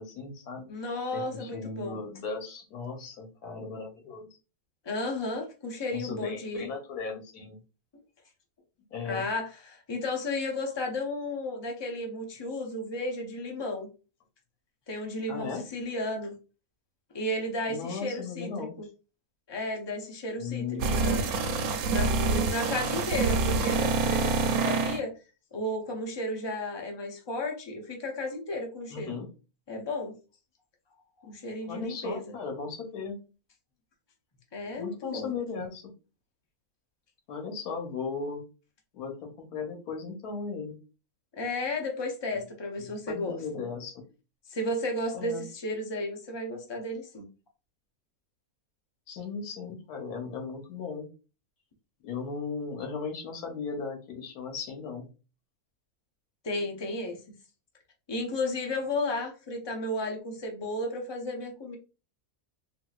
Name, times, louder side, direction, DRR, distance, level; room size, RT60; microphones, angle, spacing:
voice 1, 0.0-0.7 1.1-4.3 5.9-7.6 8.9-9.3 15.3-15.6 17.7-18.7 20.4-21.4 28.9-29.3 31.7-33.2 34.8-35.9 37.3-38.4 38.9-40.7 42.8-44.0 45.1-45.4 49.1-51.1 52.0-55.1, left 5 dB, 85° left, 2 dB, 1.4 m, -37 dB
voice 2, 0.7-2.0 4.8-6.7 9.0-13.9 14.9-16.3 17.1-18.9 19.5-21.3 21.9-25.1 25.5-29.2 29.7-30.1 31.2-32.3 34.5-35.3 41.4-43.6 44.5-47.3 56.4-57.2 58.1-61.8, left 1 dB, 45° left, 2 dB, 0.3 m, -33 dB
sound 1, 20.8-25.0, right 4 dB, 80° right, 1.1 m, -26 dB
3.7 x 2.7 x 2.3 m, 0.32 s
omnidirectional pair, 1.6 m